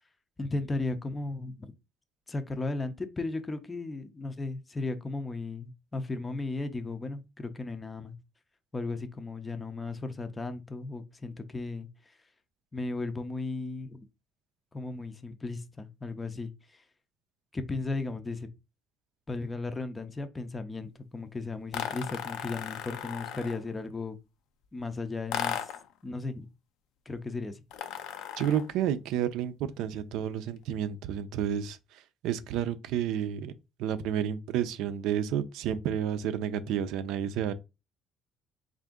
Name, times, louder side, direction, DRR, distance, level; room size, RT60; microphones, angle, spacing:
voice 1, 0.4-1.7 2.3-8.2 8.7-12.1 12.7-14.1 14.7-16.8 17.5-18.5 19.3-24.2 24.7-25.7 26.0-26.5 27.1-27.6, left 3 dB, 15° left, 0.5 m, -35 dB
sound 1, 21.7-23.7 25.3-25.9 27.7-28.7, left 10 dB, 75° left, 0.4 m, -36 dB
voice 2, 28.4-33.5 33.8-37.5, right 9 dB, 80° right, 0.4 m, -31 dB
3.7 x 2.5 x 3.6 m
cardioid pair, 130°, 0 cm